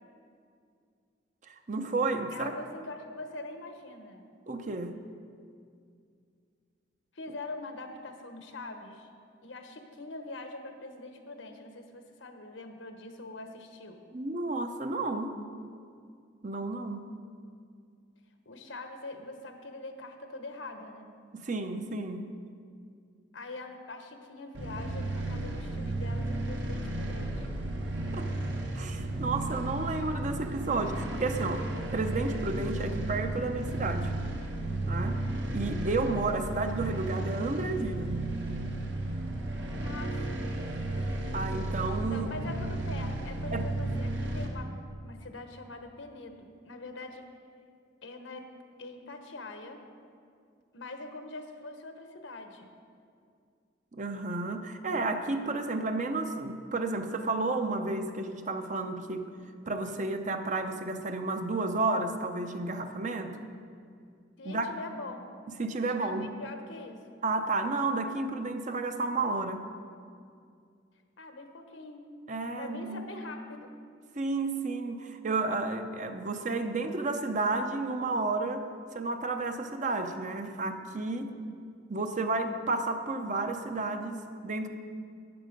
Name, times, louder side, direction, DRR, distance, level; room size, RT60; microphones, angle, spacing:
voice 1, 1.5-2.6 4.5-5.0 14.1-15.4 16.4-17.1 21.3-22.3 28.1-28.3 28.8-31.6 31.9-34.1 34.8-35.2 35.5-38.2 41.0-41.1 41.3-42.3 43.5-43.6 53.9-59.3 59.7-63.4 64.4-64.7 65.6-66.3 67.2-69.6 72.3-73.0 74.1-78.7 78.9-81.3 81.9-84.7, right 3 dB, 40° right, 7 dB, 0.7 m, -32 dB
voice 2, 2.3-4.2 7.1-9.1 9.4-14.0 18.4-21.1 23.3-27.5 39.8-40.7 42.1-44.7 45.0-47.3 48.0-48.5 48.8-49.8 50.7-52.7 64.4-65.3 65.9-67.0 71.2-72.1 72.6-73.8, left 2 dB, 80° left, 5 dB, 1.2 m, -43 dB
sound 1, 24.5-44.5, right 2 dB, 70° right, 1.5 m, -33 dB
13.0 x 9.1 x 5.2 m, 2.3 s
head